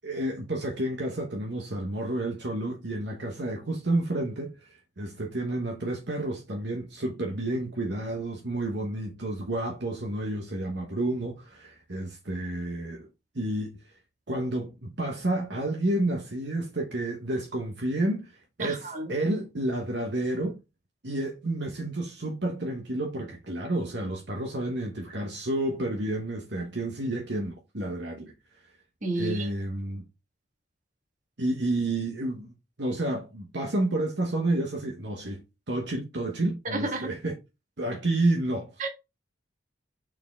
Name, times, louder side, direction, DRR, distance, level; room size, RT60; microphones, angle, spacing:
voice 1, 0.0-4.7 5.0-13.1 13.3-13.8 14.3-20.6 21.0-28.3 29.1-30.0 31.4-32.5 32.8-35.4 35.7-37.4 37.8-38.7, right 1 dB, 60° right, 1.1 m, -30 dB
voice 2, 18.6-19.1 29.0-29.5 36.7-37.1 38.8-38.9, right 2 dB, 40° right, 1.7 m, -31 dB
6.2 x 4.4 x 3.6 m
head